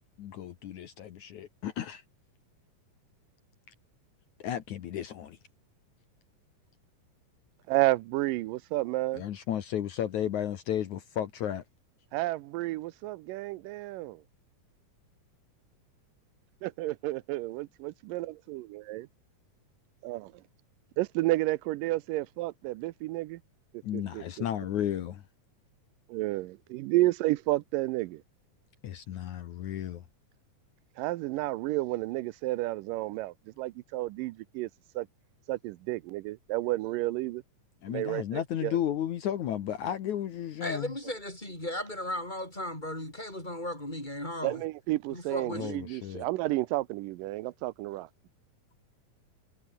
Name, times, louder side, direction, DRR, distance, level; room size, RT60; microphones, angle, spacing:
voice 1, 0.0-2.0 4.4-5.4 9.1-11.6 23.8-25.2 28.8-30.0 37.8-40.9 45.5-46.3, left 10 dB, 65° left, 2.6 m, -33 dB
voice 2, 7.7-9.2 12.1-14.2 16.6-19.1 20.0-20.3 21.0-23.4 23.9-24.2 26.1-28.2 31.0-34.7 35.0-35.1 35.5-37.4 37.9-38.8 44.4-48.1, right 18 dB, 85° right, 2.3 m, -31 dB
voice 3, 40.6-44.6 45.1-45.7, left 1 dB, 10° left, 7.6 m, -36 dB
omnidirectional pair, 3.9 m